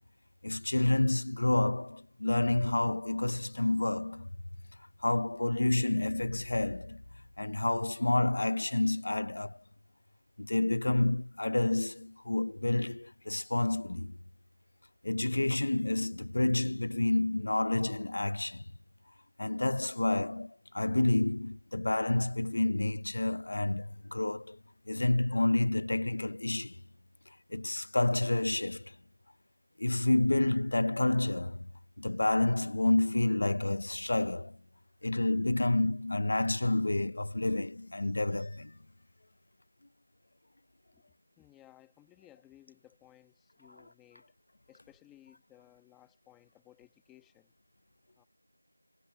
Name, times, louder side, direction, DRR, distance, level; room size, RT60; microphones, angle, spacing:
voice 1, 0.4-4.3 5.0-7.0 7.4-9.6 10.4-14.2 15.0-18.6 19.4-24.6 24.9-26.8 27.5-29.0 29.8-31.7 32.0-34.6 35.0-38.8, left 2 dB, 25° left, 0.8 m, -29 dB
voice 2, 40.9-44.3 44.7-47.5 48.2-48.3, left 14 dB, ahead, 1.4 m, -60 dB
figure-of-eight pair, 180°, 0 cm